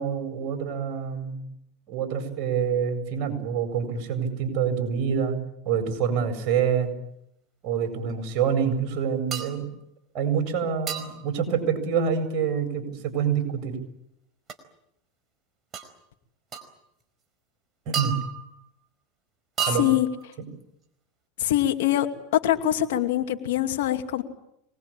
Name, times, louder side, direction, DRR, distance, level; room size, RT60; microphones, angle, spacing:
voice 1, 0.0-1.4 1.9-5.4 5.6-6.9 7.6-9.7 10.1-13.7 17.9-18.2 19.7-19.9 20.4-20.5, right 7 dB, 50° right, 6 dB, 8.0 m, -26 dB
sound 1, 9.3-9.6 10.9-11.3 14.5-14.6 15.7-15.9 16.5-16.7 17.9-18.6 19.6-20.2, right 8 dB, 30° right, 4.7 m, -32 dB
voice 2, 19.7-20.1 21.4-22.1 22.4-24.2, left 13 dB, 75° left, 6 dB, 2.4 m, -24 dB
26.0 x 20.5 x 8.9 m, 0.78 s
hypercardioid pair, 105°, 0 cm